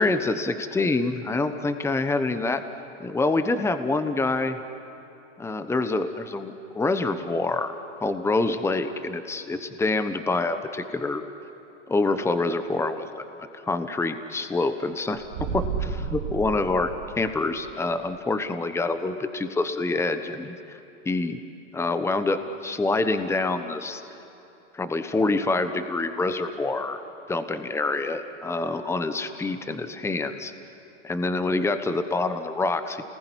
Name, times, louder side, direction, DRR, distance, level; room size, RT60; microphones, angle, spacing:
voice 1, 0.0-2.6 3.0-4.6 5.4-7.7 8.0-11.2 11.9-13.3 13.7-15.2 15.5-16.9 17.1-20.6 21.0-21.4 21.7-24.0 24.7-27.0 27.3-30.5 31.0-33.0, left 3 dB, 5° left, 9 dB, 1.1 m, -26 dB
sound 1, 15.1-17.6, right 6 dB, 65° right, 2.9 m, -31 dB
28.5 x 20.0 x 10.0 m, 2.8 s
hypercardioid pair, 120°, 38 cm